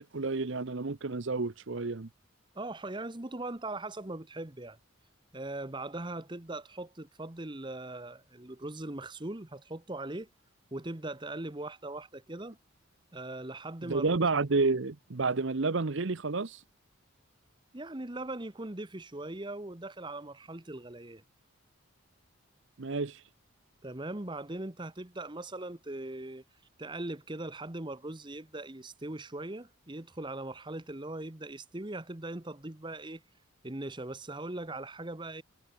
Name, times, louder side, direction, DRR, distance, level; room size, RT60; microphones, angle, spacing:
voice 1, 0.0-2.1 13.8-16.6 22.8-23.2, right 3 dB, 60° right, 0.8 m, -30 dB
voice 2, 2.5-4.8 5.3-10.3 10.7-12.6 13.1-14.3 17.7-21.2 23.8-26.4 26.8-33.2 33.6-35.4, right 2 dB, 20° right, 1.1 m, -40 dB
head